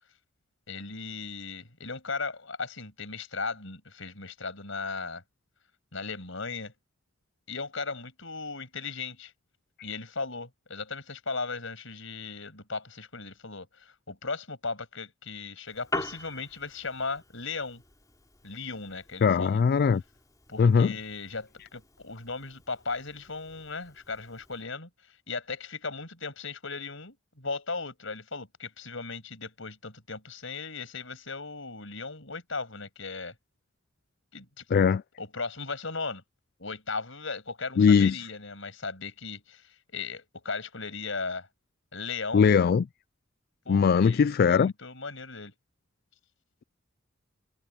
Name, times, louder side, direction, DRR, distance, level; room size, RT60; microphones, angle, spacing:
voice 1, 0.7-5.2 5.9-6.7 7.5-9.3 9.8-17.8 18.4-19.6 20.5-33.3 34.3-34.8 35.2-36.2 36.6-41.5 41.9-42.6 43.6-45.5, left 4 dB, 70° left, 6.5 m, -37 dB
Piano, 15.7-24.6, left 2 dB, 15° left, 3.5 m, -43 dB
voice 2, 19.2-20.0 20.6-20.9 34.7-35.0 37.8-38.3 42.3-42.8 43.7-44.7, left 6 dB, 50° left, 0.3 m, -21 dB
head